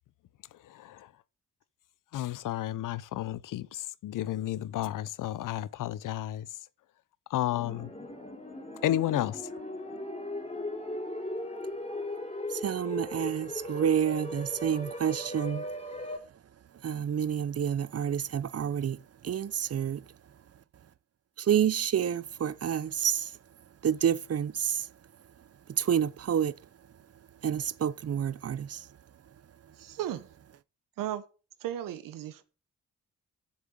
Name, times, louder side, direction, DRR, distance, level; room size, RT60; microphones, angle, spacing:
voice 1, 0.7-1.1 2.1-6.5 7.3-7.9 8.8-9.4, left 13 dB, 75° left, 0.6 m, -32 dB
sound 1, 7.5-16.2, left 1 dB, 20° left, 3.3 m, -38 dB
voice 2, 12.6-15.6 16.8-19.0 19.2-20.0 21.4-23.3 23.8-24.9 25.8-26.5 27.4-28.8, right 9 dB, 50° right, 0.7 m, -29 dB
voice 3, 29.8-30.3 31.0-31.2 31.6-32.4, right 11 dB, 85° right, 1.1 m, -35 dB
7.3 x 7.2 x 6.3 m
supercardioid pair, 50°, 32 cm